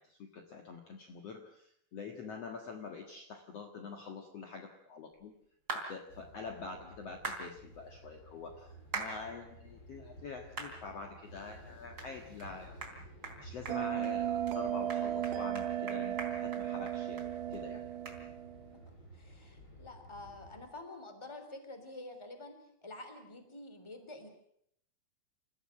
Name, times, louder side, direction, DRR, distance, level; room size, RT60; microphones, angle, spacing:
voice 1, 0.0-5.3 5.9-12.9 13.4-17.9, left 4 dB, 50° left, 4 dB, 2.4 m, -46 dB
sound 1, 5.7-5.9 7.2-7.4 8.9-9.1 9.7-9.8 10.6-10.7 11.2-11.3 12.0-12.1 12.4-12.5 12.8-13.0 13.2-13.4 13.7-14.1 14.5-14.6 14.9-17.3 17.5-17.6 18.1-18.2, right 3 dB, 25° right, 3.7 m, -40 dB
sound 2, 6.1-20.6, right 1 dB, 30° left, 6.4 m, -54 dB
Bell, 13.7-18.8, right 11 dB, 70° right, 2.4 m, -35 dB
voice 2, 18.9-24.3, left 2 dB, 10° left, 7 dB, 2.9 m, -49 dB
28.5 x 15.0 x 7.6 m, 0.71 s
omnidirectional pair, 4.2 m